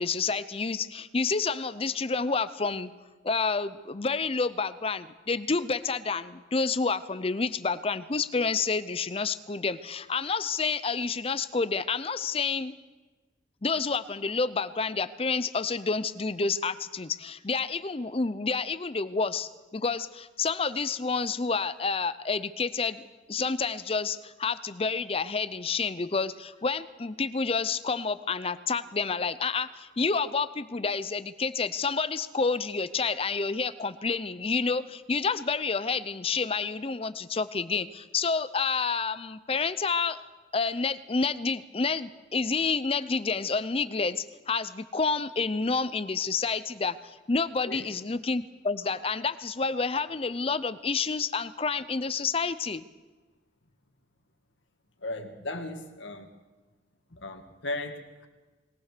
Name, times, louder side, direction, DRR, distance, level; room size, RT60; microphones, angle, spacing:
voice 1, 0.0-2.9 3.2-12.7 13.6-23.0 23.3-40.2 40.5-52.8, left 4 dB, 30° left, 15 dB, 0.6 m, -29 dB
voice 2, 55.0-56.3 57.1-58.3, left 2 dB, 75° left, 6 dB, 2.0 m, -37 dB
21.5 x 18.5 x 6.7 m, 1.3 s
head